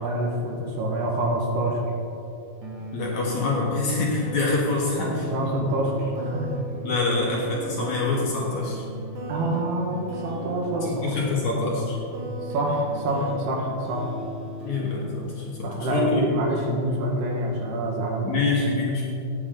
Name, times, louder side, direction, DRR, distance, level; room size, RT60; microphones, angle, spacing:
voice 1, 0.0-1.8 5.0-6.5 9.3-11.2 12.4-14.1 15.6-18.5, right 1 dB, 75° right, 0 dB, 3.6 m, -26 dB
sound 1, 2.6-17.7, equal, 55° right, 2.6 m, -37 dB
voice 2, 2.9-5.3 6.8-8.8 10.8-12.0 14.6-16.2 18.2-19.0, left 3 dB, 55° left, -3 dB, 2.4 m, -26 dB
16.5 x 9.2 x 3.9 m, 2.8 s
omnidirectional pair, 4.7 m